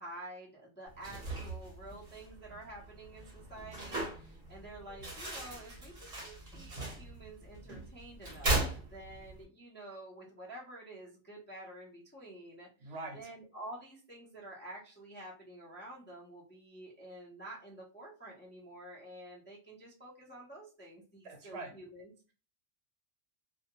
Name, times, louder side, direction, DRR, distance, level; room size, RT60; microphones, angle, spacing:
voice 1, 0.0-22.3, right 1 dB, 15° left, -4 dB, 0.5 m, -49 dB
sound 1, 0.9-9.4, right 2 dB, 40° right, 0.8 m, -39 dB
voice 2, 12.8-13.2 21.2-21.7, right 2 dB, 70° right, 4 dB, 1.0 m, -43 dB
2.2 x 2.2 x 2.9 m, 0.35 s
omnidirectional pair, 1.2 m